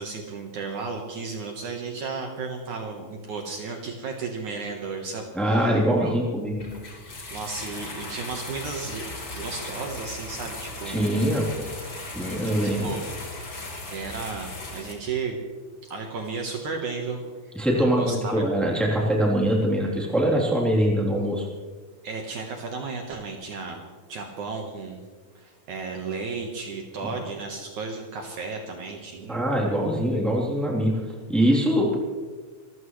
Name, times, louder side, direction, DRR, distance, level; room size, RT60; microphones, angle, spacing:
voice 1, 0.0-6.1 7.3-9.0 9.3-11.2 12.6-13.1 13.6-15.4 15.8-17.2 17.7-18.5 22.0-23.8 24.1-25.0 25.3-29.4, right 4 dB, 65° right, 2 dB, 2.6 m, -34 dB
voice 2, 5.3-6.7 10.8-11.7 12.1-12.9 17.5-21.4 29.3-31.0 31.3-32.0, equal, ahead, -3 dB, 2.8 m, -23 dB
sound 1, 6.6-14.9, left 2 dB, 30° left, 2.9 m, -37 dB
27.0 x 14.5 x 3.2 m, 1.4 s
omnidirectional pair, 4.1 m